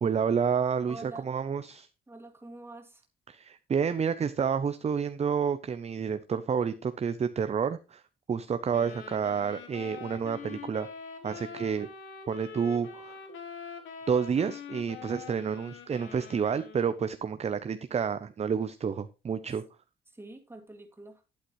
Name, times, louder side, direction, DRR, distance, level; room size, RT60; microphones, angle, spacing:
voice 1, 0.0-1.9 3.3-8.0 8.3-10.9 11.2-11.9 12.3-13.2 14.1-19.6, right 6 dB, 35° right, 11 dB, 0.6 m, -29 dB
voice 2, 0.9-1.3 2.1-3.0 20.1-21.2, right 2 dB, 10° right, 4 dB, 2.3 m, -46 dB
sound 1, 8.7-17.1, left 6 dB, 80° left, 1.9 m, -44 dB
11.5 x 8.8 x 3.1 m, 0.28 s
cardioid pair, 90°, 20 cm